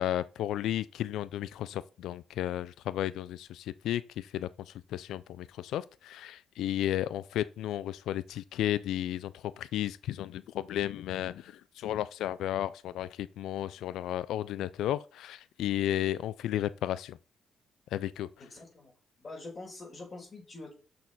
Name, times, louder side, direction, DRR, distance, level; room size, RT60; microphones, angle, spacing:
voice 1, 0.0-17.2 17.9-18.3, left 12 dB, 80° left, 0.4 m, -33 dB
voice 2, 18.3-18.9 19.2-20.7, left 2 dB, 35° left, 4.8 m, -45 dB
6.4 x 6.3 x 5.5 m
cardioid pair, 90°, 0 cm